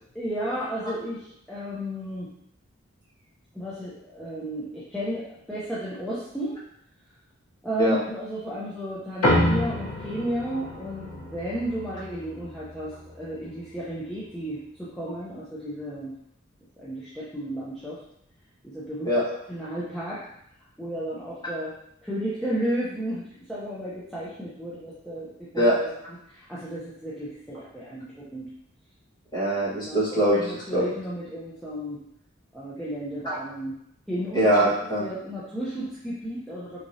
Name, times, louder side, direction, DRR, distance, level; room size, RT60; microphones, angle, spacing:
voice 1, 0.1-2.3 3.5-6.6 7.6-16.1 16.8-18.0 18.6-19.1 19.5-20.2 20.8-21.7 22.0-23.2 23.5-25.9 26.3-28.5 29.9-32.0 32.5-33.7 34.1-34.5 35.0-36.8, right 1 dB, ahead, -10 dB, 0.5 m, -33 dB
sound 1, 9.2-14.0, left 1 dB, 85° left, 1.0 m, -28 dB
voice 2, 29.3-30.4 30.7-30.9 33.2-33.3 34.3-35.0, equal, 20° left, -8 dB, 1.3 m, -22 dB
3.6 x 3.1 x 2.7 m, 0.74 s
head